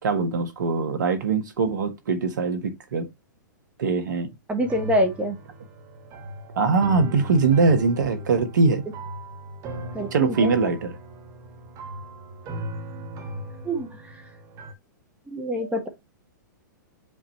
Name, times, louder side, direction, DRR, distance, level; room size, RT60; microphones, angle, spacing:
voice 1, 0.0-3.1 3.8-4.3 6.5-8.8 10.1-10.9, right 4 dB, 70° right, 1.7 m, -22 dB
voice 2, 4.5-5.4 9.9-10.5 13.6-14.2 15.3-15.9, equal, 10° right, 1.8 m, -26 dB
sound 1, 4.6-14.7, right 1 dB, 30° right, 1.6 m, -37 dB
7.5 x 5.2 x 3.3 m
hypercardioid pair, 110°, 10 cm